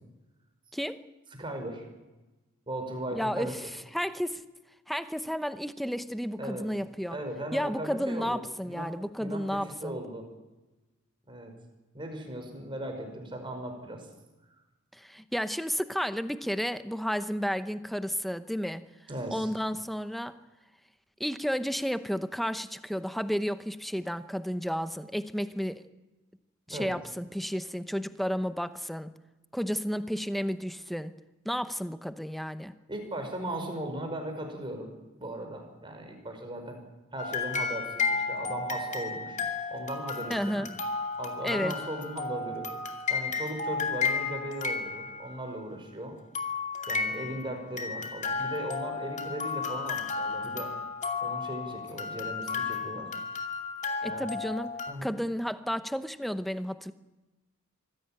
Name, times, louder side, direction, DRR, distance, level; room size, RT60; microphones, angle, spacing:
voice 1, 1.4-1.9 2.7-3.5 6.4-6.7 7.1-8.9 9.2-10.3 11.3-11.5 11.9-14.1 19.1-19.5 26.7-27.0 32.9-34.9 35.2-36.8 37.1-39.4 39.7-40.7 41.2-42.7 43.1-46.1 46.9-50.7 51.2-53.1 54.0-54.3 54.9-55.1, right 1 dB, 25° right, 4 dB, 5.3 m, -38 dB
voice 2, 3.2-3.6 3.9-4.4 4.9-7.2 7.5-10.0 14.9-18.9 19.3-20.3 21.2-25.8 26.7-29.1 29.5-31.1 31.4-32.7 40.3-40.7 41.4-41.8 54.0-56.9, equal, ahead, 11 dB, 0.8 m, -32 dB
sound 1, 37.2-45.5 46.3-54.9, left 4 dB, 35° left, 2.5 m, -33 dB
25.0 x 16.0 x 9.0 m, 1.1 s
head